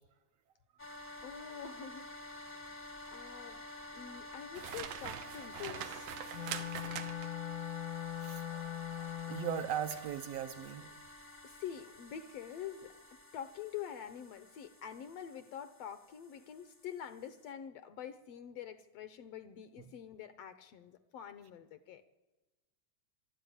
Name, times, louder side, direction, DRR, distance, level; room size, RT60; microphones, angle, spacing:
sound 1, 0.8-17.5, left 1 dB, 10° left, 0.7 m, -50 dB
voice 1, 1.2-2.7 3.1-3.6 3.9-6.4 11.4-13.0 13.3-22.1, left 9 dB, 70° left, 11 dB, 1.7 m, -46 dB
sound 2, 4.5-7.5 9.9-10.2 10.7-10.9, right 10 dB, 90° right, 2.5 m, -44 dB
Wind instrument woodwind instrument, 6.3-9.7, left 11 dB, 55° left, 1.3 m, -41 dB
voice 2, 8.2-10.9, right 9 dB, 65° right, 7 dB, 1.8 m, -39 dB
22.5 x 12.5 x 9.5 m, 1.1 s
omnidirectional pair, 3.4 m